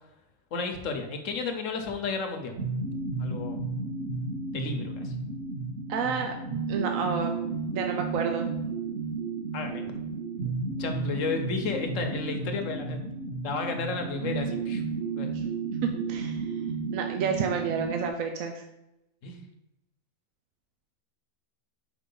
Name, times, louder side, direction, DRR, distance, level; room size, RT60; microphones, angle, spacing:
voice 1, 0.5-2.5 3.2-3.6 4.5-5.1 9.5-9.9 10.4-13.0 13.4-14.8 15.2-15.4 19.2-19.4, left 4 dB, 60° left, 5 dB, 1.2 m, -33 dB
sound 1, 2.6-18.1, right 4 dB, 85° right, 3.4 m, -33 dB
voice 2, 5.9-6.3 6.7-7.4 7.7-8.5 15.3-15.4 15.8-16.4 16.9-18.6, right 5 dB, 65° right, 3 dB, 1.0 m, -30 dB
5.0 x 4.9 x 5.4 m, 0.90 s
omnidirectional pair, 1.6 m